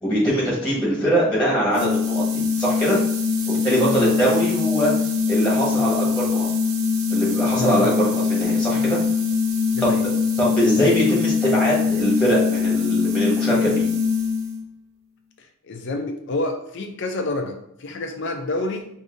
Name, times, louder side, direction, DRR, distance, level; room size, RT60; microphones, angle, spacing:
voice 1, 0.0-3.0 3.5-4.9 5.3-6.5 7.1-9.0 9.8-10.1 10.4-13.9, equal, 5° left, -6 dB, 1.3 m, -22 dB
sound 1, 1.7-14.6, left 5 dB, 80° right, 0.8 m, -22 dB
voice 2, 3.8-4.2 7.5-7.9 9.7-10.0 15.7-18.9, left 2 dB, 55° left, 5 dB, 0.5 m, -28 dB
4.8 x 2.7 x 2.6 m, 0.78 s
head